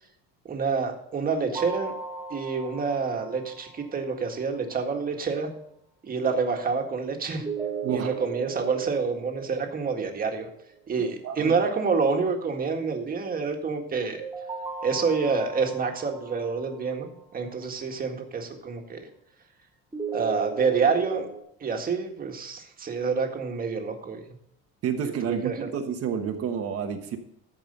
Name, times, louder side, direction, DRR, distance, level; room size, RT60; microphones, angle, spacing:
voice 1, 0.5-1.9 2.3-5.5 6.0-7.4 7.9-10.5 10.9-14.2 14.8-19.0 20.1-21.3 21.6-24.2 25.0-25.7, right 5 dB, 30° right, 3 dB, 1.8 m, -27 dB
sound 1, 1.5-4.4 7.4-10.4 14.2-17.4 19.9-21.4, right 5 dB, 10° right, 2.0 m, -37 dB
voice 2, 7.8-8.1 11.2-11.5 24.8-27.2, right 7 dB, 50° right, 5 dB, 1.2 m, -29 dB
14.5 x 5.4 x 5.4 m, 0.74 s
cardioid pair, 140°, 30 cm